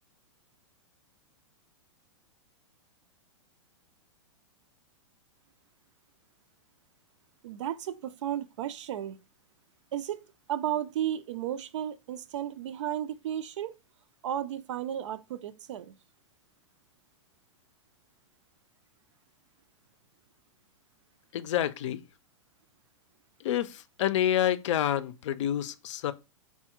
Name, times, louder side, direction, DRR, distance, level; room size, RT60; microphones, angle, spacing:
voice 1, 7.4-9.2 9.9-10.2 10.5-13.8 14.2-15.9, right 11 dB, 70° right, 0.5 m, -34 dB
voice 2, 21.3-22.0 23.4-26.1, left 11 dB, 70° left, 0.5 m, -28 dB
3.6 x 2.2 x 4.3 m
hypercardioid pair, 155°, 16 cm